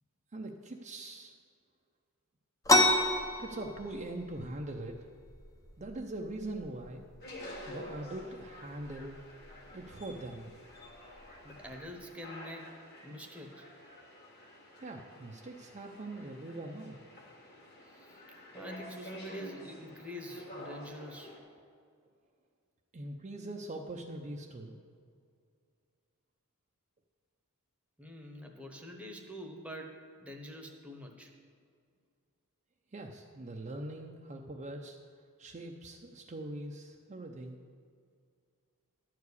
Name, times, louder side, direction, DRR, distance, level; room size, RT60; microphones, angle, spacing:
voice 1, 0.3-1.3 3.4-5.0 5.8-7.1 7.7-9.2 9.7-10.5 14.8-17.0 22.9-24.8 32.9-35.0 35.4-37.6, right 1 dB, 35° right, 1 dB, 0.6 m, -42 dB
sound 1, 2.6-12.0, left 1 dB, 15° left, 0.7 m, -34 dB
sound 2, 7.2-21.4, left 1 dB, 45° left, 2.0 m, -49 dB
voice 2, 11.4-13.7 17.9-18.2 18.5-21.3 28.0-29.9 30.2-31.3, equal, 5° right, 2 dB, 1.0 m, -46 dB
11.5 x 4.8 x 8.3 m, 2.2 s
head